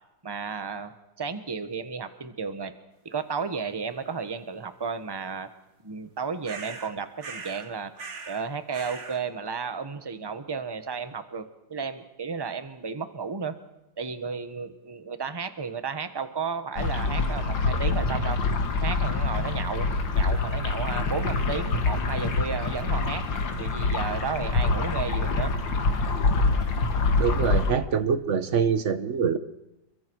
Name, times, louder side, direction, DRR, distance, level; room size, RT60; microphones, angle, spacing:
voice 1, 0.2-2.7 3.0-5.5 5.8-7.9 8.3-13.6 14.0-18.4 18.8-19.9 20.1-23.2 23.6-25.5, right 5 dB, 15° right, 10 dB, 1.0 m, -33 dB
sound 1, 6.4-6.9 7.2-7.7 8.0-8.5 8.7-9.2, right 4 dB, 75° right, 2.5 m, -40 dB
sound 2, 16.8-27.7, left 3 dB, 80° left, 2.5 m, -25 dB
voice 2, 27.2-29.4, right 7 dB, 45° right, 12 dB, 1.2 m, -25 dB
28.5 x 23.5 x 4.7 m, 0.94 s
omnidirectional pair, 2.0 m